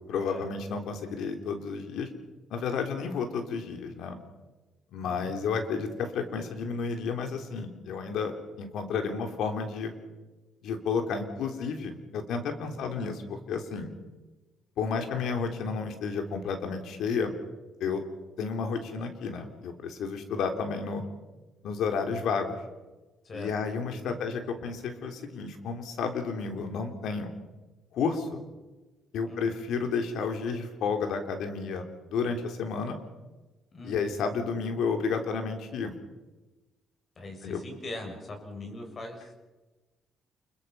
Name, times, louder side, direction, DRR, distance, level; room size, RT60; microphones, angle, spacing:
voice 1, 0.1-2.1 2.5-4.2 4.9-9.9 10.6-13.9 14.8-17.3 17.8-18.0 18.4-21.0 21.6-22.6 23.3-27.3 27.9-28.4 29.1-33.0 33.8-35.9 37.4-37.6, left 5 dB, 80° left, 6 dB, 3.5 m, -31 dB
voice 2, 5.0-5.4 12.7-12.9 23.2-23.5 23.9-24.1 29.2-29.5 33.7-34.0 37.1-39.3, left 2 dB, 45° left, 3 dB, 6.9 m, -41 dB
28.5 x 23.0 x 5.7 m, 1.2 s
cardioid pair, 90°, 0 cm